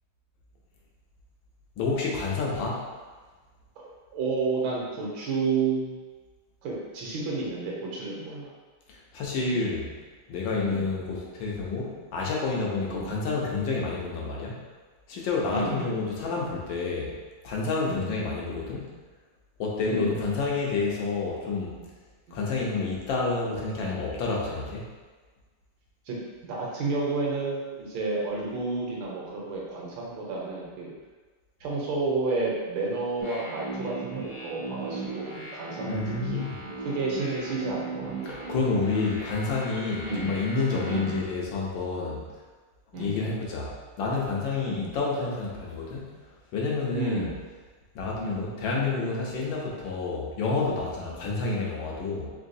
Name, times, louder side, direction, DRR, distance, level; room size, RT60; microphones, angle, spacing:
voice 1, 1.8-2.9 8.9-9.9 10.3-14.6 15.1-17.2 17.4-18.9 19.6-21.8 22.3-24.9 35.8-36.6 38.3-42.3 42.9-46.1 46.5-47.3 47.9-52.3, left 3 dB, 70° left, -3 dB, 1.4 m, -29 dB
voice 2, 3.8-6.0 6.6-8.5 9.5-9.6 10.6-10.9 12.9-13.2 15.5-15.9 17.9-18.2 19.8-20.1 22.3-22.4 26.0-26.2 26.4-30.9 31.6-38.5 40.0-40.3 40.8-41.1 42.9-43.3 44.7-44.9 46.9-47.4 48.1-48.4, right 3 dB, 70° right, -4 dB, 1.6 m, -31 dB
sound 1, 33.2-41.2, right 3 dB, 45° right, 0.4 m, -37 dB
3.9 x 3.6 x 2.6 m, 1.4 s
omnidirectional pair, 2.3 m